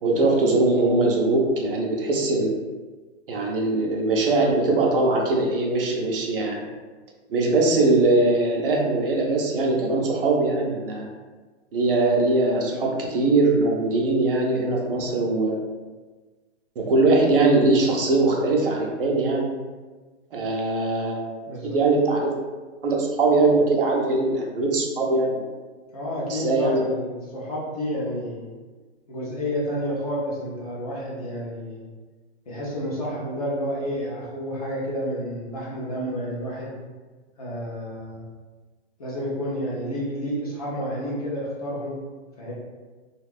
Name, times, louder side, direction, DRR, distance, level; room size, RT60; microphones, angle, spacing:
voice 1, 0.0-2.5 3.3-6.6 7.3-11.1 11.7-15.6 16.8-19.5 20.3-22.3 22.8-25.4 26.3-26.8, right 2 dB, 50° right, -1 dB, 0.6 m, -21 dB
voice 2, 21.5-21.8 25.9-28.5 29.1-31.8 32.5-36.7 37.4-38.2 39.0-42.0 42.4-42.5, equal, 35° left, -6 dB, 0.5 m, -30 dB
2.5 x 2.4 x 3.3 m, 1.3 s
hypercardioid pair, 175°, 35 cm